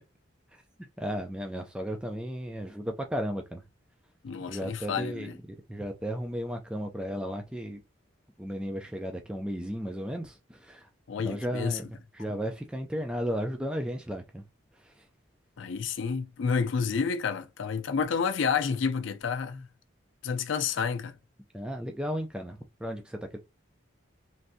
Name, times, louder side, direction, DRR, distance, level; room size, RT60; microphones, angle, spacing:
voice 1, 1.0-3.6 4.5-7.8 8.4-10.9 11.2-14.4 14.7-15.1 21.5-23.4, equal, 5° right, 0.3 m, -34 dB
voice 2, 4.2-5.3 11.1-11.8 15.6-19.7 20.2-21.1, left 6 dB, 65° left, 0.4 m, -30 dB
3.2 x 2.6 x 2.6 m
head